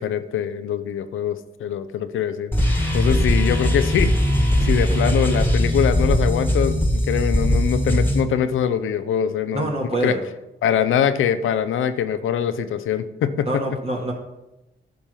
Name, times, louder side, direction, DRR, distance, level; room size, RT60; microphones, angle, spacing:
voice 1, 0.0-2.5 2.9-4.1 4.6-9.7 10.0-10.2 10.6-13.8, left 8 dB, 90° left, 12 dB, 0.6 m, -23 dB
sound 1, 2.5-8.2, equal, 10° left, 1.8 m, -20 dB
voice 2, 9.5-10.2 13.5-14.1, right 2 dB, 30° right, -1 dB, 1.9 m, -25 dB
10.0 x 5.4 x 5.7 m, 0.96 s
supercardioid pair, 50°, 20 cm